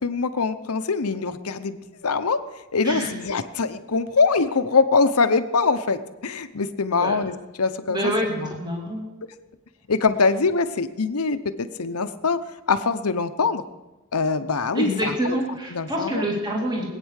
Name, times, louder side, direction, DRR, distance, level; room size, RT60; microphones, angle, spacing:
voice 1, 0.0-2.4 2.7-8.5 9.9-12.4 12.7-13.6 14.1-15.4 15.7-16.2, left 4 dB, 85° left, 11 dB, 0.9 m, -23 dB
voice 2, 7.9-9.0 14.7-16.9, right 1 dB, 20° right, -1 dB, 2.4 m, -26 dB
20.5 x 9.2 x 6.5 m, 1.1 s
head